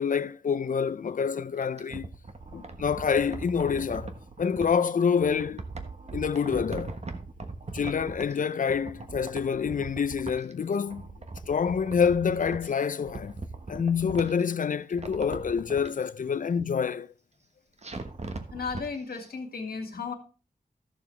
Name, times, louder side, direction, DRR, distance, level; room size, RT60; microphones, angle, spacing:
voice 1, 0.0-2.1 2.5-4.1 4.4-5.6 6.1-7.0 7.7-11.1 11.5-13.3 13.7-17.1, left 6 dB, 60° left, 0.5 m, -27 dB
sound 1, 1.6-4.7 5.2-8.4 8.7-10.5 10.8-12.7 13.0-14.5 14.9-15.9 17.8-18.8 19.2-19.3, right 3 dB, 45° right, 1.2 m, -40 dB
voice 2, 18.5-20.1, left 5 dB, 85° left, 2.0 m, -34 dB
14.0 x 6.8 x 3.3 m
wide cardioid pair, 115°, 15 cm